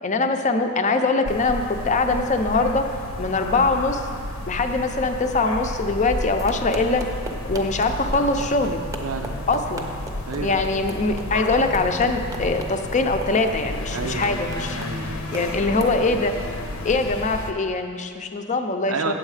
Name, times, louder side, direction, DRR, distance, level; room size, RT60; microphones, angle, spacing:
voice 1, 0.0-2.8 3.2-4.0 4.5-7.0 7.5-8.8 9.5-9.9 10.4-14.8 15.3-16.3 16.8-19.1, left 3 dB, 35° left, 6 dB, 0.5 m, -22 dB
sound 1, 1.2-17.5, left 1 dB, 85° left, 0.8 m, -32 dB
sound 2, 6.3-16.0, right 1 dB, 15° right, 0.7 m, -39 dB
voice 2, 9.0-9.5 10.3-10.7 13.9-14.4 14.7-15.3 18.9-19.2, right 4 dB, 85° right, 6 dB, 0.6 m, -30 dB
8.4 x 7.3 x 4.9 m, 2.1 s
head